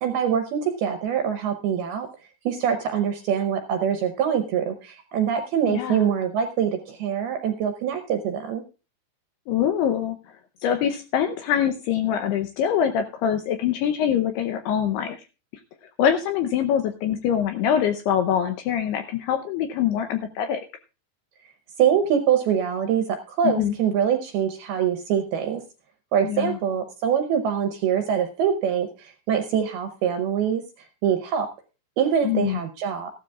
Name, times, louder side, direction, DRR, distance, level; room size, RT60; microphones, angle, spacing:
voice 1, 0.0-2.1 2.5-8.6 21.8-25.6 26.1-30.6 31.0-31.5 32.0-33.1, right 8 dB, 80° right, 7 dB, 2.3 m, -24 dB
voice 2, 5.7-6.1 9.5-10.2 10.6-15.2 16.0-20.6 23.4-23.8 26.2-26.6 32.2-32.6, left 9 dB, 80° left, 7 dB, 2.4 m, -24 dB
15.0 x 12.5 x 2.4 m, 0.32 s
omnidirectional pair, 5.4 m